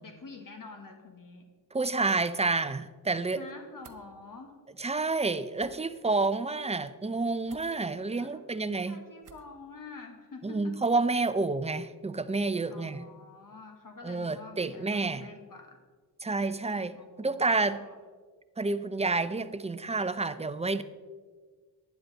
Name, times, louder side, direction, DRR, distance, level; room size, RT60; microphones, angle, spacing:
voice 1, 0.0-1.5 3.3-4.6 8.2-10.7 12.7-15.8 16.9-18.0, left 4 dB, 55° left, 4 dB, 1.4 m, -47 dB
voice 2, 1.7-3.4 4.8-9.0 10.4-13.1 14.0-15.3 16.2-17.8 18.6-20.8, right 3 dB, 15° right, 13 dB, 0.5 m, -29 dB
sound 1, 3.8-4.0 5.5-5.7 7.5-7.7 9.2-9.5, right 5 dB, 50° right, 0.9 m, -54 dB
11.0 x 9.7 x 4.0 m, 1.5 s
cardioid pair, 65°, 39 cm